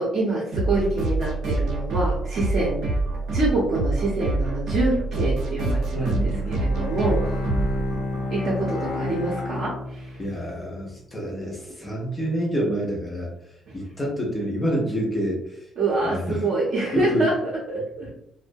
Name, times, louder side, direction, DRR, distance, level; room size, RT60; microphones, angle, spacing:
voice 1, 0.0-3.0 3.3-7.6 8.3-10.2 15.8-18.1, right 2 dB, 45° right, -6 dB, 0.6 m, -26 dB
sound 1, 0.5-8.9, right 2 dB, 90° right, 0.8 m, -26 dB
voice 2, 5.9-7.0 7.5-7.7 10.2-13.3 13.7-15.6 16.0-16.4 16.9-17.3, equal, 15° left, -2 dB, 0.5 m, -28 dB
Bowed string instrument, 6.3-10.4, left 2 dB, 85° left, 0.5 m, -30 dB
2.2 x 2.1 x 2.6 m, 0.76 s
cardioid pair, 180°, 0 cm